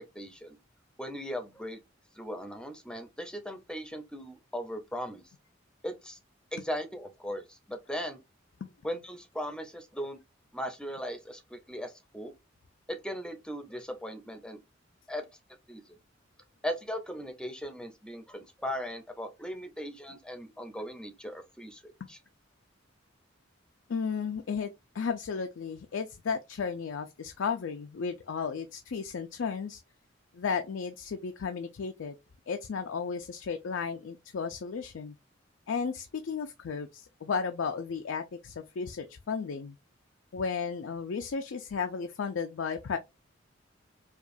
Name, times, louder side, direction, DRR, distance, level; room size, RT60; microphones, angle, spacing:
voice 1, 0.1-0.6 1.0-1.8 2.1-5.2 5.8-6.2 6.5-8.2 8.8-10.2 10.5-12.3 12.9-14.6 15.1-15.2 15.7-16.0 16.6-22.2, equal, 5° left, 0.6 m, -38 dB
voice 2, 23.9-29.8 30.3-32.1 32.5-35.2 35.7-39.7 40.3-43.0, left 5 dB, 75° left, 0.4 m, -34 dB
4.9 x 2.3 x 2.6 m
head